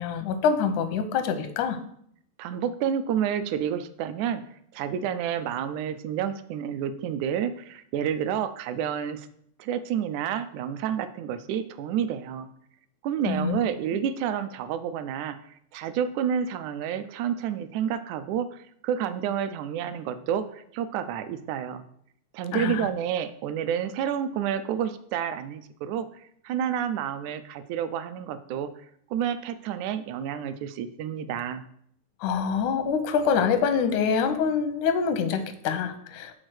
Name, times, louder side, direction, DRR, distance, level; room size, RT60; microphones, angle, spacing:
voice 1, 0.0-1.8 13.3-13.6 22.5-22.9 32.2-36.3, left 6 dB, 85° left, 9 dB, 2.1 m, -25 dB
voice 2, 2.4-4.4 4.7-9.3 9.6-12.5 13.0-21.8 22.3-28.7 29.1-31.6, right 9 dB, 80° right, 11 dB, 1.9 m, -29 dB
6.4 x 4.1 x 6.2 m, 0.68 s
omnidirectional pair, 3.4 m